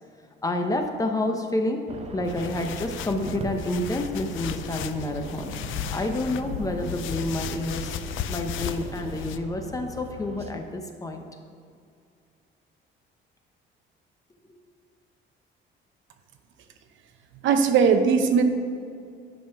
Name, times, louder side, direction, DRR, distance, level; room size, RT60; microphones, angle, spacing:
voice 1, 0.4-1.8 2.1-5.5 5.9-8.0 8.3-11.2, left 2 dB, 15° left, 4 dB, 0.7 m, -29 dB
sound 1, 1.9-10.5, right 3 dB, 30° right, 0.7 m, -39 dB
sound 2, 2.2-9.4, left 8 dB, 70° left, 0.5 m, -35 dB
voice 2, 17.4-18.4, right 6 dB, 70° right, 7 dB, 0.8 m, -19 dB
10.5 x 5.3 x 5.8 m, 2.4 s
cardioid pair, 160°, 21 cm